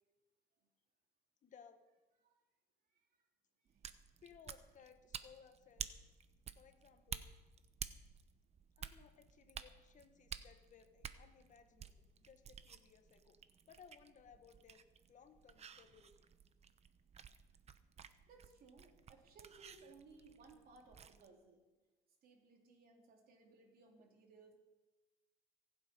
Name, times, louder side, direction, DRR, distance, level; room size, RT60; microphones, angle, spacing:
voice 1, 1.4-1.8 4.2-5.9 6.5-7.3 8.8-11.9 12.2-13.3 13.6-14.8 15.1-16.1, left 7 dB, 50° left, 7 dB, 1.5 m, -62 dB
sound 1, 3.7-21.3, right 7 dB, 40° right, 0.8 m, -53 dB
voice 2, 18.3-21.6 22.2-24.5, right 3 dB, 60° right, 1 dB, 3.5 m, -62 dB
23.5 x 8.0 x 5.4 m, 1.1 s
cardioid pair, 110°, 17 cm